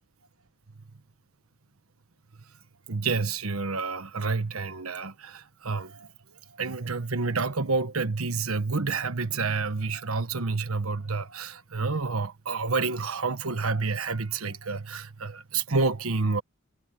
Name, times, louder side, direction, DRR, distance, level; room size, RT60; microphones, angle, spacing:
voice 1, 2.9-6.1 6.5-16.4, right 4 dB, 80° right, 1.2 m, -29 dB
head